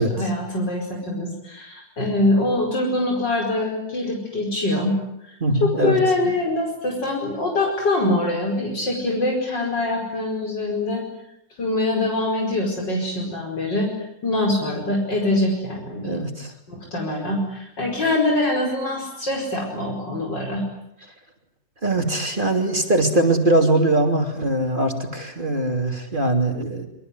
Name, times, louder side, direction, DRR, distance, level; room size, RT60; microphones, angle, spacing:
voice 1, 0.0-5.0 5.6-11.0 11.6-13.9 14.2-16.2 16.7-20.6, left 2 dB, 75° left, 1 dB, 5.8 m, -24 dB
voice 2, 5.4-6.0 6.2-6.3 16.0-16.5 21.8-26.9, right 2 dB, 25° right, 4 dB, 3.3 m, -21 dB
26.0 x 23.5 x 9.6 m, 0.79 s
omnidirectional pair, 1.9 m